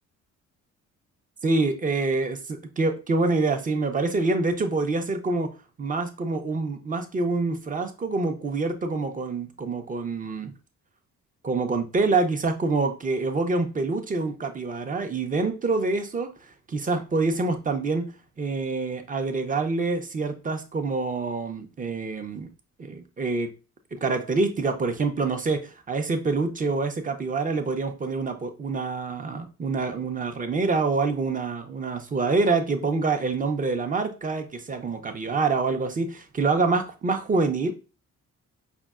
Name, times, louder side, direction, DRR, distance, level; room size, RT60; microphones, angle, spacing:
voice 1, 1.4-5.5 5.8-10.5 11.4-16.3 16.7-22.5 22.8-23.5 23.9-37.7, right 3 dB, 25° right, 0.6 m, -26 dB
5.1 x 2.1 x 2.3 m
cardioid pair, 90°, 30 cm